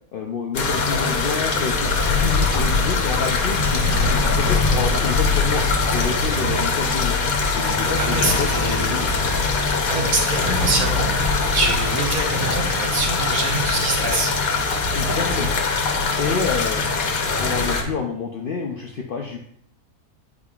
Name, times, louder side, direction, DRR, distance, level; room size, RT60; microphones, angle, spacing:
voice 1, 0.1-5.6 5.9-7.2 7.5-9.1 14.9-15.5 16.2-16.9 17.4-19.4, left 5 dB, 85° left, 1 dB, 0.4 m, -28 dB
sound 1, 0.5-17.8, left 4 dB, 65° left, 1.2 m, -22 dB
sound 2, 2.6-18.0, equal, 10° right, 1.4 m, -35 dB
voice 2, 8.0-9.0 9.9-14.3 17.0-17.1, right 3 dB, 65° right, 1 dB, 1.5 m, -25 dB
8.5 x 4.9 x 2.3 m, 0.68 s
omnidirectional pair, 1.6 m